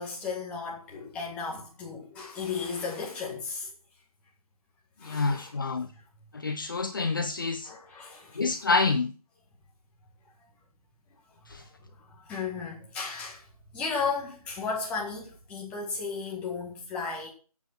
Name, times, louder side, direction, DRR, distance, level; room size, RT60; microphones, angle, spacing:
voice 1, 0.0-3.7 5.0-5.6 5.9-6.0 6.7-6.9 7.7-8.7 12.0-13.5 13.7-17.3, left 5 dB, 5° left, 1.9 m, -35 dB
voice 2, 5.0-5.9 6.3-7.7 8.4-9.1 11.5-11.7, left 4 dB, 35° left, 0.6 m, -28 dB
9.0 x 8.3 x 7.3 m
figure-of-eight pair, 165°, 19 cm